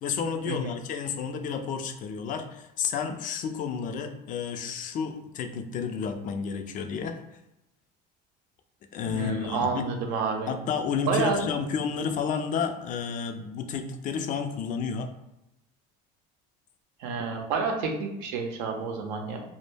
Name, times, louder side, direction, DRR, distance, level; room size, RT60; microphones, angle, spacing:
voice 1, 0.0-7.2 8.9-9.9 10.5-15.1, left 6 dB, 40° left, 6 dB, 0.4 m, -31 dB
voice 2, 9.1-10.5 11.1-11.4 17.0-19.4, right 4 dB, 80° right, 2 dB, 0.6 m, -29 dB
2.1 x 2.0 x 3.2 m, 0.89 s
supercardioid pair, 110°, 21 cm